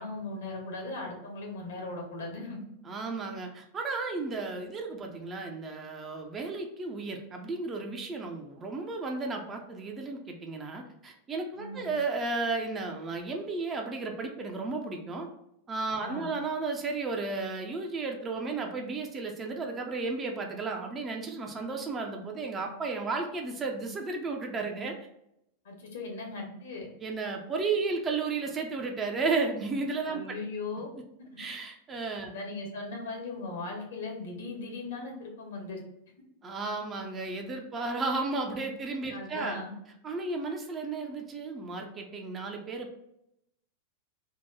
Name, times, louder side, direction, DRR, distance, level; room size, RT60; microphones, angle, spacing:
voice 1, 0.0-2.6 11.6-11.9 16.0-16.3 25.6-26.9 30.1-30.9 32.3-35.8 39.1-39.7, left 3 dB, 60° left, 0 dB, 0.9 m, -38 dB
voice 2, 2.8-15.3 15.7-25.0 27.0-30.2 31.4-32.3 36.4-39.6 40.0-42.9, right 3 dB, 20° right, 2 dB, 0.5 m, -33 dB
2.8 x 2.2 x 3.5 m, 0.80 s
figure-of-eight pair, 90°, 0 cm